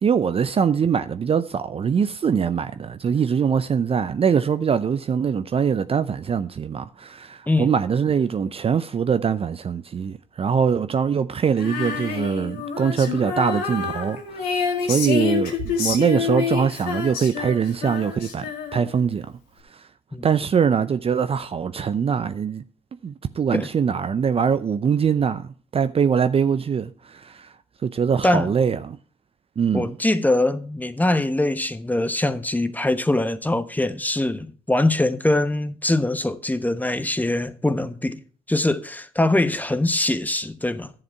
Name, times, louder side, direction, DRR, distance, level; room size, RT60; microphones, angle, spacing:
voice 1, 0.0-18.5 18.7-19.4 19.7-19.8 20.2-22.6 23.0-27.5 27.8-29.0 29.6-29.8, right 7 dB, 35° right, 0.6 m, -23 dB
Female singing, 11.5-19.0, left 6 dB, 80° left, 2.0 m, -27 dB
voice 2, 29.7-38.2 38.5-40.9, left 1 dB, 10° left, 1.0 m, -22 dB
11.0 x 7.2 x 4.6 m
hypercardioid pair, 55°, 16 cm